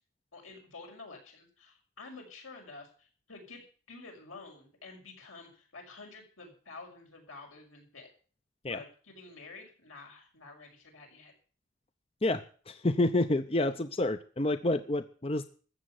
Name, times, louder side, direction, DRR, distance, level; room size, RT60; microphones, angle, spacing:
voice 1, 0.3-3.6 3.9-8.1 8.7-11.3, left 3 dB, 85° left, 1 dB, 6.2 m, -49 dB
voice 2, 12.2-15.4, left 2 dB, 30° left, 10 dB, 0.6 m, -29 dB
14.0 x 7.7 x 9.5 m, 0.42 s
head